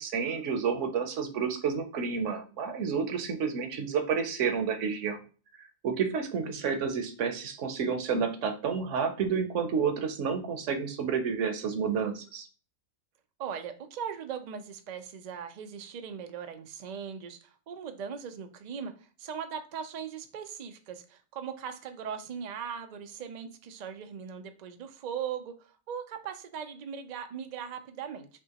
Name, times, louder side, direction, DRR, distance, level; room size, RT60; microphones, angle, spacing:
voice 1, 0.0-5.2 5.8-12.5, right 6 dB, 65° right, 7 dB, 1.0 m, -30 dB
voice 2, 13.4-25.5 25.9-28.3, right 7 dB, 80° right, 7 dB, 0.3 m, -39 dB
5.6 x 2.8 x 2.8 m, 0.37 s
omnidirectional pair, 1.4 m